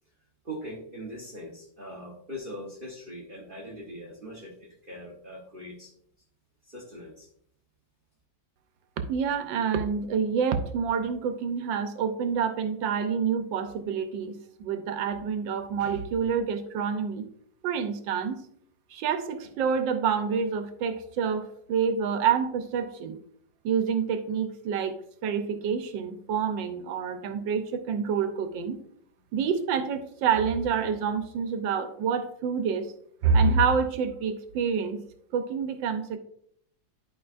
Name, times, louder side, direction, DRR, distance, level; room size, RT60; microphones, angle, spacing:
voice 1, 0.4-5.9 6.6-7.3, equal, 35° right, 0 dB, 1.0 m, -41 dB
voice 2, 9.1-17.3 17.6-18.4 18.9-23.2 23.6-24.9 25.2-28.8 29.3-32.9 33.2-35.0 35.3-36.2, right 6 dB, 90° right, 8 dB, 1.5 m, -27 dB
11.0 x 5.1 x 2.5 m, 0.68 s
omnidirectional pair, 2.0 m